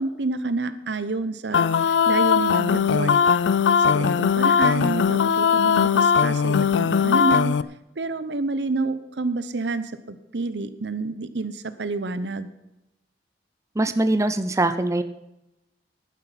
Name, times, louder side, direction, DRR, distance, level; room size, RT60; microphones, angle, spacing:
voice 1, 0.0-3.1 3.9-7.6 8.0-12.5, right 3 dB, 70° right, 13 dB, 0.9 m, -28 dB
sound 1, 1.5-7.6, left 6 dB, 90° left, 0.4 m, -19 dB
voice 2, 13.8-15.0, right 2 dB, 20° right, 10 dB, 0.6 m, -22 dB
11.5 x 9.7 x 5.9 m, 0.90 s
head